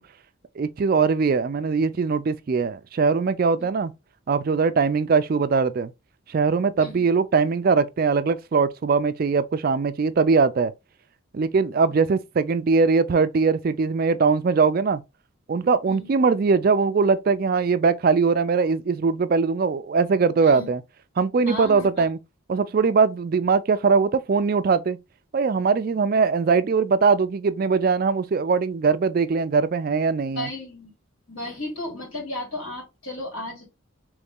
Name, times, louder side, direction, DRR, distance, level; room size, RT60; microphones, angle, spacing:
voice 1, 0.6-3.9 4.3-5.9 6.3-10.7 11.3-15.0 15.5-20.8 21.2-22.2 22.5-25.0 25.3-30.5, right 5 dB, 45° right, 0.3 m, -21 dB
voice 2, 21.5-22.1 30.4-30.9 31.3-33.7, left 1 dB, 75° left, 2.8 m, -34 dB
4.0 x 3.1 x 3.6 m
head